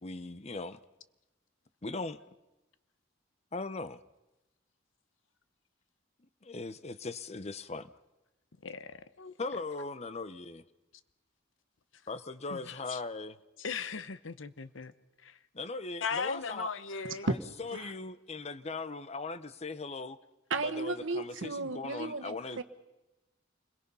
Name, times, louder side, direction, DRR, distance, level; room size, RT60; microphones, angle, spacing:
voice 1, 0.0-0.8 1.8-2.2 3.5-4.0 6.4-7.9 9.4-10.6 12.1-13.4 15.5-16.7 17.2-20.2 20.6-22.6, left 3 dB, 35° left, 0.8 m, -39 dB
voice 2, 8.6-9.3 12.5-13.0 13.6-14.9 15.2-15.4 16.0-17.3, left 5 dB, 90° left, 0.9 m, -38 dB
voice 3, 20.5-22.6, right 3 dB, 90° right, 1.4 m, -35 dB
28.5 x 21.5 x 5.6 m
head